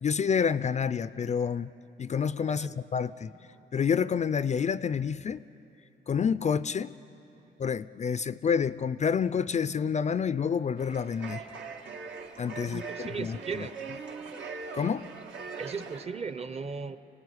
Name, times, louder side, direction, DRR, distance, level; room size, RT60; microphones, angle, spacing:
voice 1, 0.0-1.7 2.0-3.3 3.7-5.4 6.1-6.9 7.6-11.4 12.4-13.4 14.7-15.1, left 6 dB, 35° left, 15 dB, 0.5 m, -28 dB
voice 2, 2.5-2.8 3.5-3.7 7.4-7.5 12.6-13.7 15.6-17.0, right 5 dB, 30° right, 12 dB, 0.9 m, -37 dB
sound 1, 10.8-16.1, right 5 dB, 75° right, 2.0 m, -41 dB
25.0 x 17.5 x 9.8 m, 2.9 s
cardioid pair, 90°, 20 cm